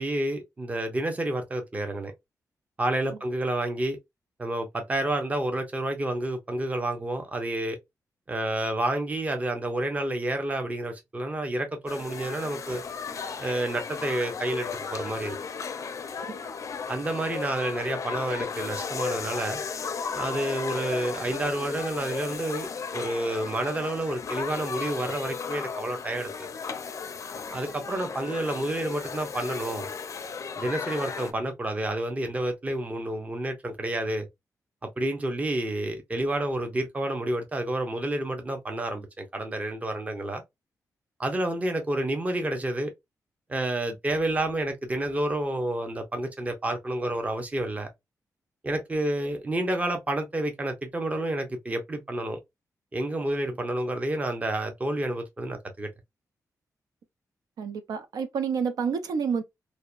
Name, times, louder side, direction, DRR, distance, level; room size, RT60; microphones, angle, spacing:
voice 1, 0.0-2.1 2.8-4.0 4.4-7.8 8.3-12.8 13.4-15.4 16.9-19.6 20.1-26.5 27.5-29.9 30.6-34.3 35.0-40.4 41.2-42.9 43.5-47.9 48.6-52.4 52.9-55.9, right 1 dB, 20° right, 0.6 m, -29 dB
sound 1, 11.9-31.3, left 5 dB, 55° left, 0.4 m, -35 dB
voice 2, 57.6-59.4, right 6 dB, 85° right, 0.5 m, -29 dB
2.7 x 2.1 x 2.3 m
cardioid pair, 100°, 6 cm